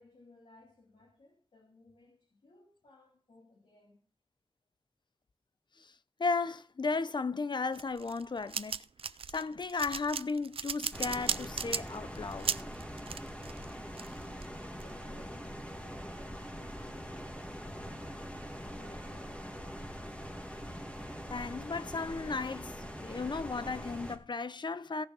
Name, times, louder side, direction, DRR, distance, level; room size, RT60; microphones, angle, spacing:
voice 1, 0.0-4.0 13.9-19.9, left 2 dB, 80° left, 3.2 m, -60 dB
voice 2, 6.2-8.8 9.3-12.5 21.3-25.1, left 4 dB, 55° left, 0.7 m, -35 dB
sound 1, 7.7-14.9, right 6 dB, 85° right, 0.5 m, -37 dB
sound 2, 10.9-24.2, equal, 15° left, 2.1 m, -43 dB
17.0 x 6.3 x 5.5 m
wide cardioid pair, 75°, 9 cm